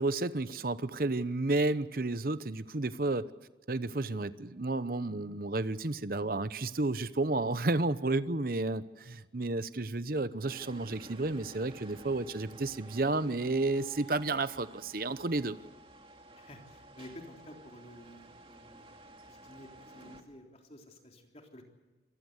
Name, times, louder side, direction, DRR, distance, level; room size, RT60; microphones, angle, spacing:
voice 1, 0.0-3.3 3.7-15.6, right 2 dB, 55° right, 14 dB, 0.9 m, -31 dB
sound 1, 10.5-20.2, right 2 dB, 30° right, 2.3 m, -53 dB
voice 2, 16.3-21.6, left 1 dB, 35° left, 2 dB, 3.6 m, -52 dB
26.5 x 19.0 x 8.1 m, 1.2 s
head